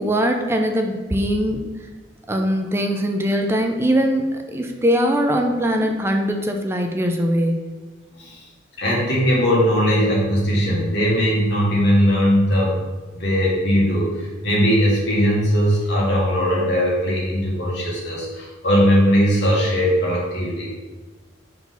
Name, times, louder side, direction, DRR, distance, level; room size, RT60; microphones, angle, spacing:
voice 1, 0.0-1.6 2.3-7.7, equal, 15° right, 3 dB, 0.4 m, -21 dB
voice 2, 8.8-12.8 13.1-20.7, equal, 65° left, -5 dB, 1.8 m, -19 dB
4.7 x 3.9 x 5.5 m, 1.3 s
head